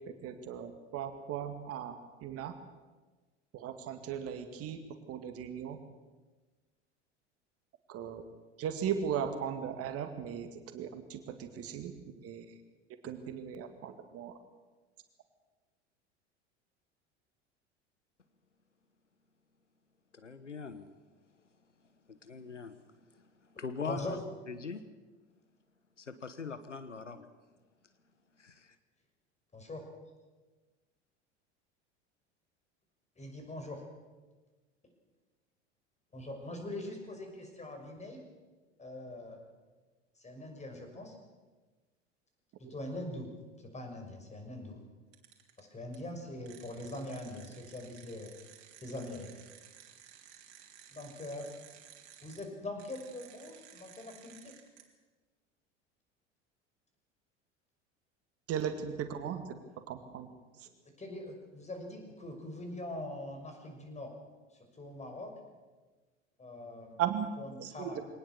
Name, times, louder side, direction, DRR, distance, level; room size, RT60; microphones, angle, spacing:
voice 1, 0.2-2.0 2.2-2.5 3.5-4.8 5.1-5.8 7.9-8.2 8.6-10.5 10.7-11.9 12.2-12.5 13.0-14.4 42.6-42.7 58.5-59.4 59.9-60.3 60.6-60.7 67.0-67.3 67.6-67.9, right 8 dB, 40° right, 8 dB, 2.1 m, -37 dB
voice 2, 20.1-20.9 22.1-24.2 24.5-24.9 26.0-27.3 28.4-28.8, left 5 dB, 85° left, 12 dB, 1.2 m, -42 dB
voice 3, 23.9-24.2 29.5-29.8 33.2-33.8 36.1-38.2 38.8-39.4 40.2-41.1 42.7-43.3 43.6-44.8 45.6-48.3 48.8-49.3 50.9-51.5 52.2-54.5 61.0-64.1 64.8-65.3 66.4-67.0 67.4-68.0, left 1 dB, 20° left, 4 dB, 5.9 m, -42 dB
sound 1, 45.1-45.6 45.9-46.0 46.4-52.4 52.8-54.8, right 10 dB, 60° right, 3.4 m, -56 dB
23.0 x 19.0 x 7.0 m, 1.3 s
figure-of-eight pair, 75°, 36 cm